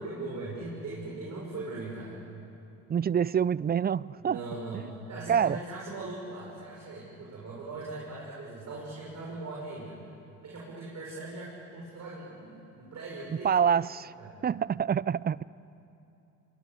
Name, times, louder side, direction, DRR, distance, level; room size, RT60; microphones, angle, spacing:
voice 1, 0.0-2.1 4.2-10.0 10.4-13.7 14.2-14.4, right 2 dB, 50° right, -4 dB, 6.7 m, -40 dB
voice 2, 2.9-4.4 5.3-5.6 13.4-14.1 14.4-15.4, right 8 dB, 25° right, 21 dB, 0.5 m, -26 dB
27.0 x 22.5 x 8.2 m, 2.9 s
hypercardioid pair, 65°, 36 cm